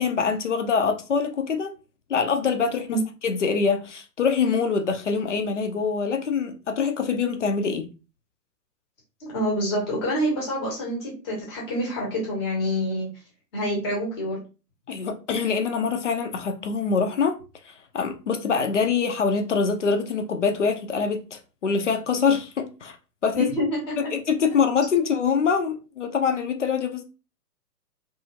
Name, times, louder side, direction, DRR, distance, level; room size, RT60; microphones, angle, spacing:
voice 1, 0.0-1.7 2.1-7.9 14.9-17.4 17.6-23.0 23.2-23.5 24.1-27.0, left 5 dB, 50° left, 0.5 m, -24 dB
voice 2, 9.2-13.1 13.5-14.4 23.3-24.1, equal, 15° left, 0.8 m, -27 dB
2.7 x 2.4 x 2.7 m
figure-of-eight pair, 130°, 48 cm